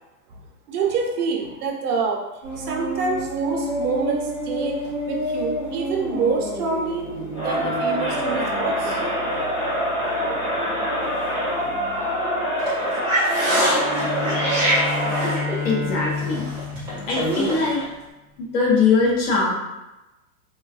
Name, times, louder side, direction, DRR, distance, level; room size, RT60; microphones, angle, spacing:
voice 1, 0.7-2.2 2.5-7.1 7.4-9.0, right 4 dB, 70° right, 1 dB, 0.7 m, -26 dB
sound 1, 2.4-17.9, right 1 dB, 20° right, 0.3 m, -29 dB
Crowd, 7.3-15.5, equal, 20° left, 1.1 m, -25 dB
Bowed string instrument, 13.7-17.8, left 5 dB, 65° left, 1.0 m, -30 dB
voice 2, 15.6-16.5 17.1-17.8 18.5-19.5, left 4 dB, 40° left, -3 dB, 0.6 m, -21 dB
2.5 x 2.2 x 2.3 m, 1.0 s
supercardioid pair, 145°, 47 cm